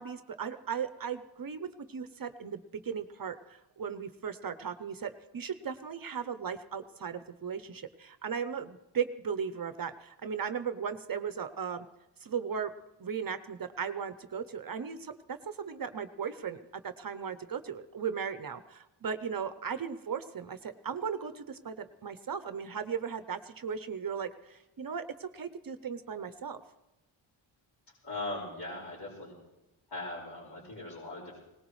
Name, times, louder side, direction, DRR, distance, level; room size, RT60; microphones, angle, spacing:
voice 1, 0.0-11.9 12.2-12.7 13.0-26.6, right 7 dB, 45° right, 11 dB, 0.7 m, -37 dB
voice 2, 28.0-29.3 29.9-31.4, left 2 dB, 50° left, -7 dB, 5.1 m, -39 dB
21.5 x 19.0 x 3.2 m, 0.97 s
wide cardioid pair, 130°, 49 cm